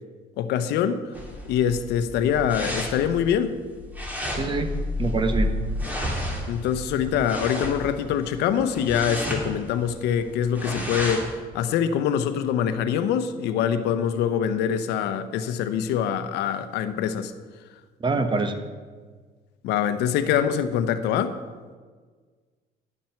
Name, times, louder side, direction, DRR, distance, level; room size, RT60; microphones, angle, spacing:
voice 1, 0.4-1.0 1.5-3.6 6.5-17.3 19.6-21.4, left 8 dB, 85° left, 0.8 m, -24 dB
sound 1, 1.1-11.3, left 1 dB, 10° right, 2.6 m, -31 dB
voice 2, 4.3-4.7 5.0-5.5 18.0-18.6, right 3 dB, 30° right, 1.0 m, -25 dB
11.0 x 7.5 x 5.8 m
cardioid pair, 110°, 17 cm